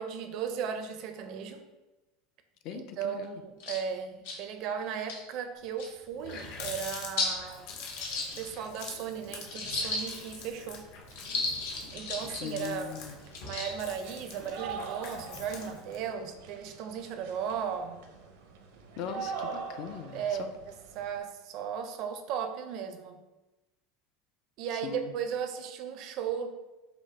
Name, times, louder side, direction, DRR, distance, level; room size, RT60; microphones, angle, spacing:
voice 1, 0.0-1.6 2.7-7.7 8.4-10.9 11.9-13.0 13.4-18.0 20.1-23.2 24.6-26.5, right 7 dB, 45° right, 8 dB, 0.4 m, -36 dB
voice 2, 2.6-3.4 12.4-13.2 19.0-20.5 24.7-25.1, left 7 dB, 45° left, 8 dB, 0.4 m, -40 dB
sound 1, 3.2-3.3 3.6-3.8 4.2-4.4 4.9-5.2 5.8-5.9 6.3-6.4 7.2-7.4 7.8-8.8 9.5-10.3 11.1-12.5 13.2-13.7, left 3 dB, 80° left, 1.2 m, -34 dB
Water tap faucet, 5.7-5.8 6.0-16.1, left 5 dB, 65° left, 0.8 m, -46 dB
sound 2, 8.1-8.2 8.5-21.2, right 5 dB, 85° right, 0.7 m, -45 dB
5.8 x 2.0 x 4.3 m, 1.1 s
supercardioid pair, 160°, 0 cm